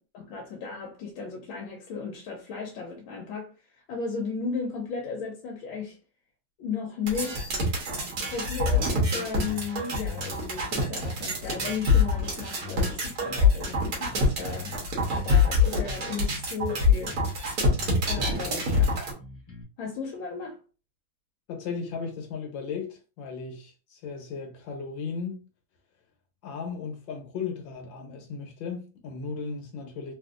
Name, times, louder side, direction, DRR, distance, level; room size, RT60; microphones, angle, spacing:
voice 1, 0.1-6.0 6.6-7.5 8.3-14.8 15.1-17.2 18.1-18.9 19.8-20.6, left 5 dB, 85° left, 1.4 m, -35 dB
sound 1, 7.1-19.1, left 3 dB, 55° right, 1.4 m, -25 dB
sound 2, 9.4-9.7 10.0-12.3 12.6-14.8 15.2-17.4 17.7-19.6, left 4 dB, 20° left, 0.8 m, -43 dB
voice 2, 21.5-25.4 26.4-30.1, left 5 dB, 70° left, 1.5 m, -36 dB
3.6 x 2.5 x 2.4 m
omnidirectional pair, 2.1 m